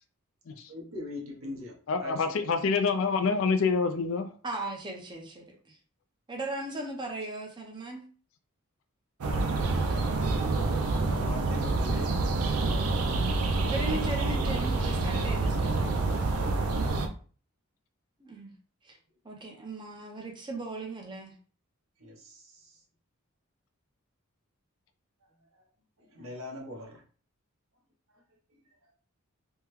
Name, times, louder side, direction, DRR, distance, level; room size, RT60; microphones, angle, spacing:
voice 1, 0.7-2.4 10.1-12.2 12.5-13.1 13.9-14.1 16.8-17.1 22.0-22.8 25.5-25.6 26.0-27.0, left 1 dB, 70° right, 1.0 m, -42 dB
voice 2, 1.9-4.3, left 4 dB, 65° left, 0.4 m, -26 dB
voice 3, 4.4-5.8 6.3-8.0 13.7-16.1 18.2-18.5 18.8-19.0 19.2-21.3, right 2 dB, 20° right, 0.7 m, -38 dB
sound 1, 9.2-17.1, right 3 dB, 85° right, 0.5 m, -27 dB
3.5 x 2.2 x 3.0 m
head